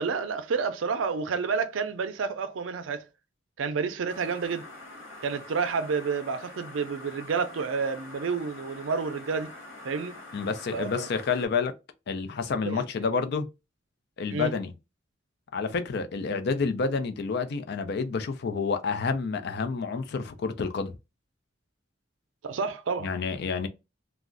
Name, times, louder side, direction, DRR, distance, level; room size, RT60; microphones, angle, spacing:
voice 1, 0.0-3.0 3.6-4.7 5.2-9.5 9.8-10.2 10.7-11.1 12.6-12.8 14.3-14.5 22.4-23.1, right 5 dB, 85° right, 0.5 m, -29 dB
sound 1, 4.1-11.5, left 2 dB, 90° left, 1.4 m, -45 dB
voice 2, 10.3-11.7 12.1-13.5 14.2-14.7 15.5-20.9 23.0-23.7, left 5 dB, 60° left, 0.4 m, -29 dB
2.4 x 2.0 x 3.6 m
head